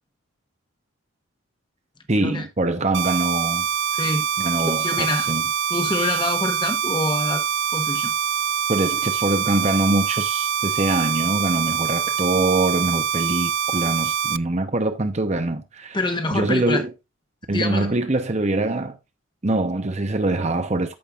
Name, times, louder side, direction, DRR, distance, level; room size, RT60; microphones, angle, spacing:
voice 1, 2.1-3.7 4.4-5.4 6.0-6.2 8.7-16.0 16.3-16.9 17.5-19.0 19.4-21.0, right 2 dB, 35° right, 0.9 m, -23 dB
sound 1, 2.9-14.4, right 7 dB, 60° right, 0.4 m, -24 dB
voice 2, 3.9-4.3 4.6-5.3 5.7-7.5 7.7-8.1 15.9-16.8 17.5-17.9, left 2 dB, 25° left, 1.2 m, -26 dB
14.0 x 5.4 x 2.5 m
head